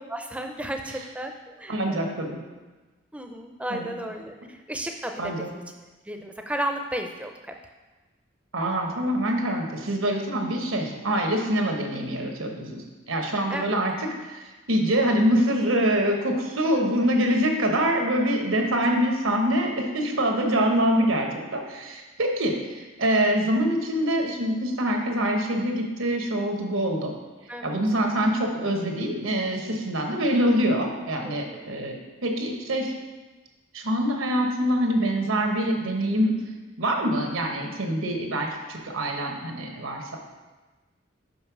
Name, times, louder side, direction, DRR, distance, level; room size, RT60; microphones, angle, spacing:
voice 1, 0.0-2.4 3.1-5.6 6.0-7.5 13.5-13.8 27.5-27.8 31.2-31.8, right 1 dB, 5° right, 4 dB, 0.4 m, -34 dB
voice 2, 1.7-2.4 3.7-3.9 5.2-5.5 8.5-13.9 14.2-27.1 27.6-32.0 32.2-32.9 33.7-36.3 36.8-40.2, equal, 85° right, 2 dB, 1.1 m, -25 dB
5.4 x 5.4 x 6.0 m, 1.2 s
head